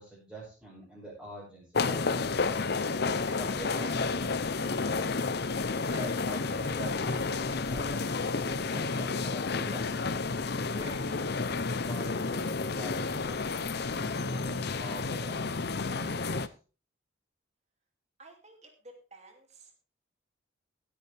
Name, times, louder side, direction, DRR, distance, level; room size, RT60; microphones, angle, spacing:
voice 1, 0.0-2.3 3.1-4.8 5.9-10.0 10.6-15.4 15.7-16.5, right 1 dB, 5° right, -9 dB, 5.9 m, -46 dB
sound 1, 1.7-16.5, left 4 dB, 50° left, 0.7 m, -31 dB
voice 2, 18.2-19.7, right 2 dB, 30° right, 4 dB, 2.6 m, -53 dB
16.5 x 8.9 x 3.4 m, 0.35 s
head